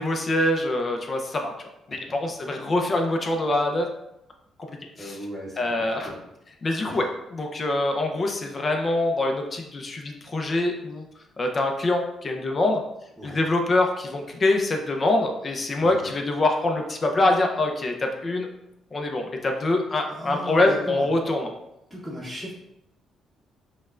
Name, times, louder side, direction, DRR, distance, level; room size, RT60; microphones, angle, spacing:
voice 1, 0.0-3.9 5.0-5.2 5.6-6.1 6.6-11.1 11.4-12.8 13.2-18.5 18.9-21.5, left 2 dB, 35° left, 3 dB, 0.6 m, -24 dB
voice 2, 4.9-5.6 6.0-6.2 6.9-7.0 13.2-13.4 15.8-16.0 20.1-21.1 21.9-22.5, equal, ahead, -9 dB, 0.9 m, -36 dB
5.1 x 2.2 x 2.4 m, 0.86 s
cardioid pair, 90°, 0 cm